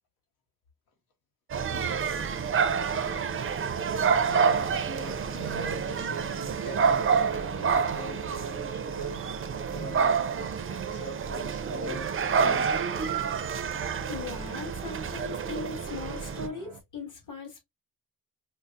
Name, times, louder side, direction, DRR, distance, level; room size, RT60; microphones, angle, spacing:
sound 1, 1.5-16.5, right 6 dB, 35° right, 0.5 m, -28 dB
sound 2, 2.0-16.8, right 9 dB, 75° right, 0.6 m, -45 dB
voice 1, 4.3-10.2 10.7-12.9, right 1 dB, 85° left, 1.1 m, -41 dB
voice 2, 13.8-17.6, left 4 dB, 60° left, 1.7 m, -39 dB
5.5 x 2.0 x 2.5 m
wide cardioid pair, 145°, 36 cm